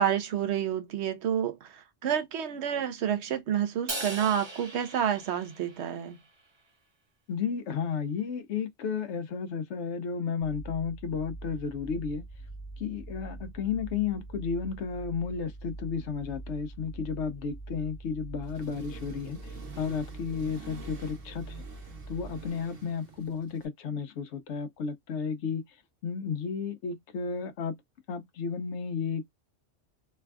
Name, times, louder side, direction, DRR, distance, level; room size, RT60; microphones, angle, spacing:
voice 1, 0.0-6.2, right 9 dB, 70° right, 0.8 m, -29 dB
Crash cymbal, 3.9-6.3, right 2 dB, 30° right, 0.6 m, -39 dB
voice 2, 7.3-12.3 12.8-21.6 22.1-25.6 26.0-27.7 28.1-29.2, left 6 dB, 70° left, 0.9 m, -33 dB
sound 1, 10.4-22.5, right 2 dB, 5° right, 1.0 m, -43 dB
Accelerating revving vroom, 18.4-23.7, right 5 dB, 90° right, 1.3 m, -48 dB
3.3 x 2.3 x 2.2 m
omnidirectional pair, 1.3 m